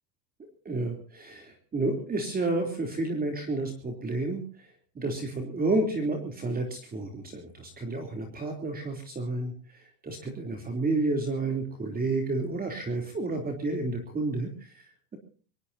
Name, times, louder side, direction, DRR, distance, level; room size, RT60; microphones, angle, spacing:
voice 1, 0.6-4.7 4.9-15.2, right 2 dB, 20° right, 4 dB, 3.3 m, -31 dB
24.0 x 20.0 x 2.8 m, 0.41 s
supercardioid pair, 135°, 48 cm